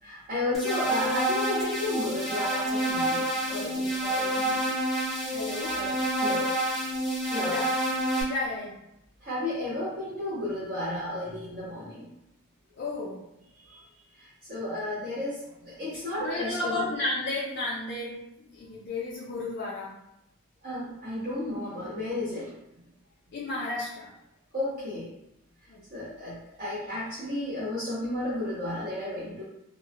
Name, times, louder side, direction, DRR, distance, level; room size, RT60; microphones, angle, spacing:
voice 1, 0.0-4.6 5.7-6.5 7.3-7.6 9.2-12.1 13.6-13.8 14.1-16.9 20.6-22.6 24.5-25.1 25.9-29.4, left 1 dB, 40° right, -10 dB, 0.6 m, -33 dB
sound 1, 0.5-8.2, right 1 dB, ahead, 0.6 m, -28 dB
voice 2, 5.2-5.7 7.4-7.7 8.2-8.7 12.8-13.2 16.2-18.2 18.5-19.9 23.3-24.1 25.7-25.8, left 2 dB, 50° left, -7 dB, 0.4 m, -32 dB
2.8 x 2.1 x 2.5 m, 0.84 s
head